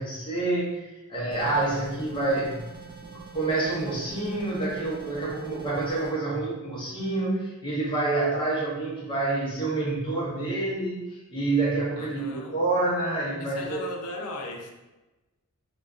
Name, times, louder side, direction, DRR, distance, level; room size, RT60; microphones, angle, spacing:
voice 1, 0.0-2.7 3.0-13.8, right 2 dB, 20° left, -6 dB, 0.7 m, -28 dB
sound 1, 1.3-6.1, right 4 dB, 20° right, 0.3 m, -45 dB
voice 2, 12.0-12.6 13.4-14.7, left 2 dB, 80° left, 3 dB, 0.4 m, -37 dB
2.4 x 2.2 x 2.3 m, 1.1 s
head